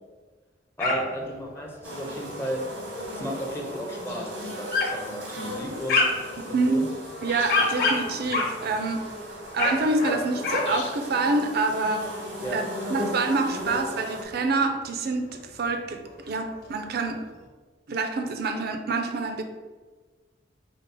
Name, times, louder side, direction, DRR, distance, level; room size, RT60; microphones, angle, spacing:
sound 1, 0.8-1.3 1.6-1.7 2.3-2.8 3.5-3.6 4.1-4.2 4.7-5.0 5.4-6.3 6.9-9.0 9.4-10.7 11.0-11.3 11.6-11.7 12.0-12.1 12.7-13.6 14.0-14.1 14.3-14.4 15.3-15.4 15.6-15.7 15.9-16.6, left 3 dB, 50° left, 1.1 m, -27 dB
voice 1, 0.8-2.6 3.1-6.0 6.4-6.9 12.4-12.6, equal, 15° left, -1 dB, 0.5 m, -34 dB
sound 2, 1.8-14.2, equal, 85° right, 1.0 m, -37 dB
sound 3, 4.1-4.4 7.3-7.8 10.6-11.2, left 4 dB, 80° left, 0.6 m, -41 dB
voice 2, 6.4-6.9 7.2-9.0 9.5-12.1 12.5-12.6 12.9-17.3 17.9-19.4, right 3 dB, 55° right, 6 dB, 0.4 m, -27 dB
5.2 x 2.0 x 4.0 m, 1.3 s
head